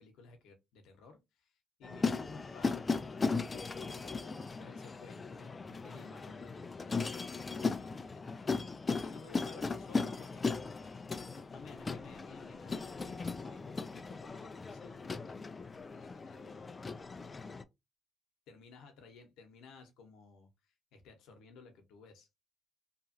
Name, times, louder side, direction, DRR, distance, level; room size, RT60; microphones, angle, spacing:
voice 1, 0.0-2.9 3.5-7.1 7.5-8.5 9.0-11.0 11.3-15.4 15.9-17.6 18.5-22.3, left 4 dB, 90° left, 0.9 m, -56 dB
sound 1, 1.8-17.6, left 4 dB, 30° left, 0.3 m, -37 dB
2.8 x 2.4 x 2.7 m
cardioid pair, 90°, 0 cm